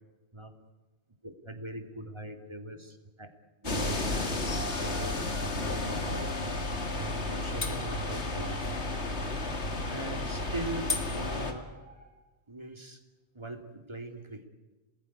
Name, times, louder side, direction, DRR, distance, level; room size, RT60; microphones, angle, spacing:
voice 1, 1.2-3.3 3.6-5.2 5.6-6.4 6.9-8.6 9.1-9.6 9.9-11.7 12.5-13.0 13.3-14.4, right 1 dB, 25° right, 5 dB, 2.6 m, -41 dB
sound 1, 3.6-11.5, left 2 dB, 80° left, 2.5 m, -32 dB
sound 2, 4.4-12.1, equal, 15° left, 7.3 m, -47 dB
28.0 x 20.0 x 9.9 m, 1.2 s
omnidirectional pair, 1.1 m